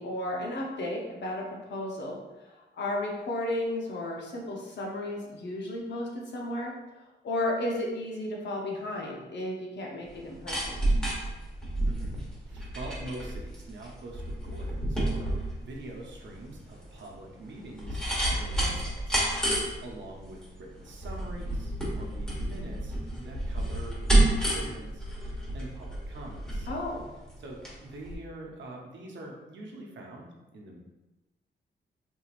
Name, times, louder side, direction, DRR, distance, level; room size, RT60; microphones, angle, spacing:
voice 1, 0.0-6.7 7.2-10.6 26.7-27.1, left 1 dB, 70° left, -1 dB, 0.8 m, -33 dB
sound 1, 10.1-27.8 28.1-28.2, right 1 dB, 5° left, 1.1 m, -30 dB
voice 2, 11.8-19.2 19.8-25.3 25.5-26.7 27.4-30.8, right 1 dB, 80° right, -1 dB, 0.7 m, -44 dB
3.6 x 3.0 x 2.5 m, 1.0 s
cardioid pair, 95°, 19 cm